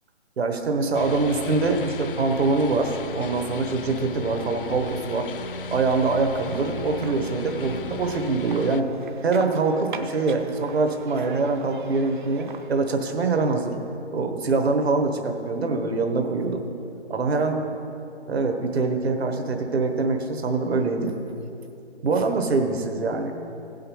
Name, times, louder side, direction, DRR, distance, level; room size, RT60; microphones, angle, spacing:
voice 1, 0.4-5.3 5.7-8.9 9.2-13.7 14.1-16.6 17.1-17.7 18.3-21.1 22.0-23.3, right 3 dB, 60° right, 4 dB, 1.4 m, -24 dB
sound 1, 0.9-8.8, left 4 dB, 50° left, 0.4 m, -36 dB
sound 2, 5.9-13.0, right 4 dB, 45° right, 0.7 m, -41 dB
16.0 x 5.6 x 5.5 m, 2.7 s
hypercardioid pair, 160°, 35 cm